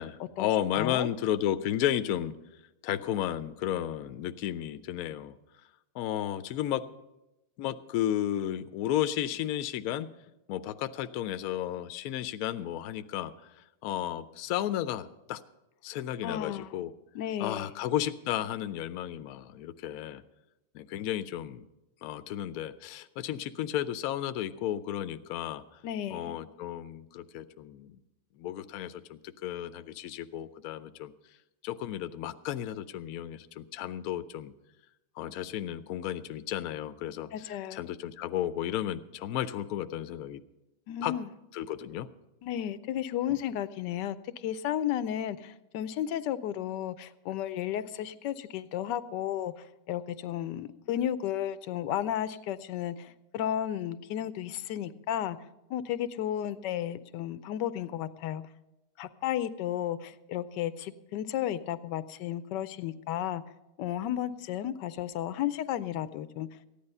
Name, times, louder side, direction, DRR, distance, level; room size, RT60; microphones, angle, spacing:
voice 1, 0.0-2.3 2.8-5.4 5.9-6.8 7.6-10.1 10.5-15.4 15.8-16.9 17.4-20.2 20.7-21.6 22.0-25.6 26.1-28.0 28.4-31.1 31.6-34.5 35.2-40.4 41.0-41.1 41.5-42.1, left 11 dB, 70° left, 12 dB, 1.0 m, -33 dB
voice 2, 0.7-1.1 16.2-16.8 17.1-17.7 25.8-26.4 37.3-37.8 40.9-41.3 42.4-55.4 55.7-58.4 59.0-63.4 63.8-66.5, left 11 dB, 85° left, 14 dB, 1.3 m, -33 dB
14.5 x 10.5 x 5.4 m, 0.97 s
omnidirectional pair, 1.8 m